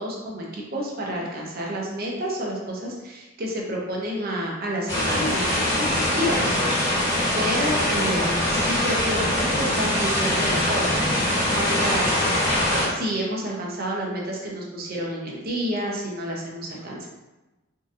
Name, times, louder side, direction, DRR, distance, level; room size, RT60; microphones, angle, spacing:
voice 1, 0.0-17.1, equal, 50° right, -2 dB, 0.7 m, -30 dB
sound 1, 4.9-12.9, left 1 dB, 20° left, 1.4 m, -23 dB
3.8 x 2.7 x 2.4 m, 1.1 s
head